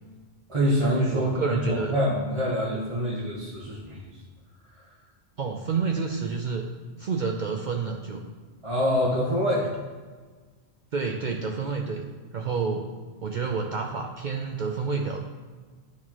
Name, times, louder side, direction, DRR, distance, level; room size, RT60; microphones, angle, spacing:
voice 1, 0.5-4.1 8.6-9.7, equal, 30° right, -8 dB, 1.1 m, -25 dB
voice 2, 1.1-1.9 5.4-6.7 7.0-8.2 10.9-12.1 12.3-12.9 13.2-15.2, right 5 dB, 60° right, 2 dB, 0.5 m, -29 dB
10.5 x 4.3 x 2.9 m, 1.5 s
omnidirectional pair, 1.1 m